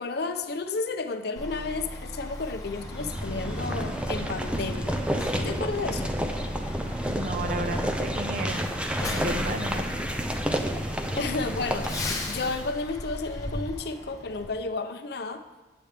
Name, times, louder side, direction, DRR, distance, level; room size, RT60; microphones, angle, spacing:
voice 1, 0.0-5.0 5.4-6.2 11.2-12.0 12.3-15.4, left 3 dB, 60° left, 7 dB, 0.6 m, -32 dB
Truck, 1.4-14.5, left 1 dB, 20° left, 0.8 m, -37 dB
sound 1, 2.8-12.8, equal, 5° right, 0.4 m, -30 dB
voice 2, 7.1-8.6 9.1-9.9, right 1 dB, 50° right, 6 dB, 0.7 m, -33 dB
8.6 x 7.8 x 3.4 m, 1.3 s
head